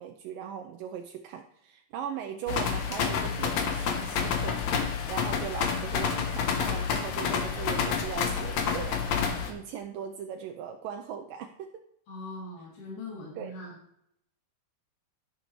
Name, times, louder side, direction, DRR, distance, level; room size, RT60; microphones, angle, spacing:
voice 1, 0.0-11.7 13.4-13.5, right 8 dB, 80° right, 5 dB, 2.1 m, -39 dB
sound 1, 2.5-9.5, left 6 dB, 70° left, 1.8 m, -29 dB
voice 2, 12.1-13.7, left 2 dB, 90° left, -10 dB, 4.9 m, -41 dB
14.0 x 6.4 x 3.2 m, 0.73 s
omnidirectional pair, 4.3 m